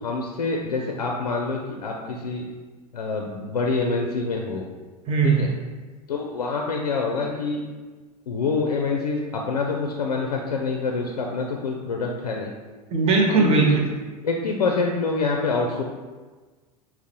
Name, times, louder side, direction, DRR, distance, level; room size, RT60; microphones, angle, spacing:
voice 1, 0.0-2.4 2.9-4.7 5.2-5.5 6.1-7.6 8.3-12.5 13.5-13.8 14.2-15.8, left 4 dB, 75° left, 1 dB, 0.4 m, -26 dB
voice 2, 5.1-5.5 12.9-13.9, right 4 dB, 30° right, 0 dB, 0.7 m, -19 dB
5.7 x 2.0 x 2.7 m, 1.3 s
figure-of-eight pair, 80°, 20 cm